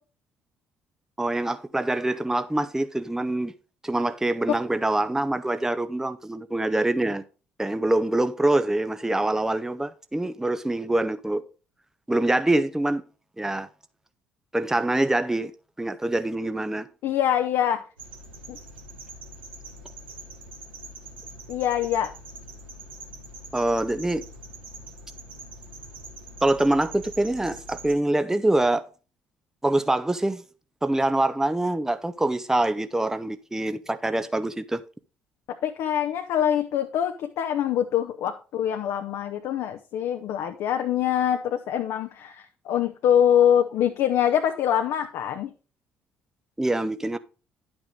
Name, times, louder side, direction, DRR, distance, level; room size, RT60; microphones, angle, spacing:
voice 1, 1.2-3.5 3.8-7.2 7.6-11.4 12.1-13.0 13.4-13.7 14.5-15.5 15.8-16.9 23.5-24.3 26.4-28.8 29.6-30.4 30.8-34.8 46.6-47.2, right 1 dB, 10° right, 0.7 m, -25 dB
voice 2, 17.0-17.8 18.5-18.6 21.5-22.1 35.5-45.5, left 10 dB, 65° left, 0.8 m, -24 dB
sound 1, 18.0-27.9, right 1 dB, 85° right, 1.4 m, -43 dB
10.5 x 6.2 x 3.8 m
hypercardioid pair, 50°, 6 cm